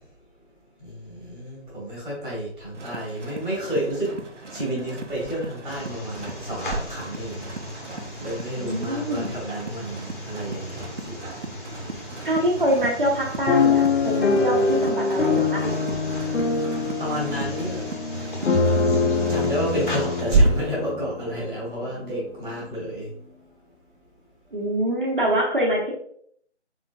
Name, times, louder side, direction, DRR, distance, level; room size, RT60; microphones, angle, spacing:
voice 1, 0.8-4.2 4.5-7.5 8.2-11.2 17.0-17.8 19.3-23.1, right 1 dB, 5° right, -16 dB, 1.0 m, -28 dB
sound 1, 2.7-20.7, right 3 dB, 85° right, 0.9 m, -39 dB
sound 2, 5.7-20.2, left 1 dB, 45° left, 0.9 m, -36 dB
voice 2, 8.6-9.3 12.2-15.7 24.5-25.9, right 1 dB, 45° right, -2 dB, 1.0 m, -25 dB
sound 3, 13.5-21.6 22.2-22.3 22.5-22.8, left 4 dB, 70° left, 0.7 m, -24 dB
3.6 x 3.5 x 2.5 m, 0.64 s
figure-of-eight pair, 155°, 35 cm